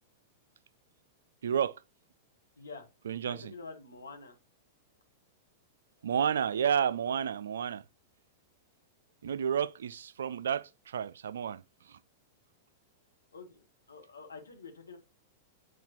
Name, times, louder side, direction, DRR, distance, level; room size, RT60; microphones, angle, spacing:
voice 1, 1.4-1.8 3.1-3.5 6.0-7.8 9.2-12.0, right 8 dB, 75° right, 0.3 m, -31 dB
voice 2, 2.6-2.9 3.2-4.3 13.3-15.0, left 4 dB, 85° left, 1.4 m, -47 dB
8.0 x 4.6 x 3.0 m
hypercardioid pair, 100°, 0 cm